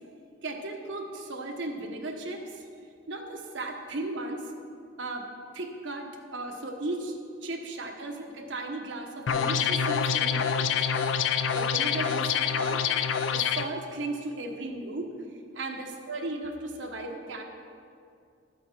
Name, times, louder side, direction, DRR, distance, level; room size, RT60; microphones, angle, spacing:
voice 1, 0.4-2.6 3.1-4.4 5.0-5.3 5.5-7.1 7.4-10.7 11.5-12.9 13.3-15.1 15.5-17.4, right 2 dB, 85° right, 3 dB, 1.2 m, -36 dB
sound 1, 9.3-13.7, left 7 dB, 80° left, 0.4 m, -26 dB
12.5 x 8.2 x 4.4 m, 2.4 s
head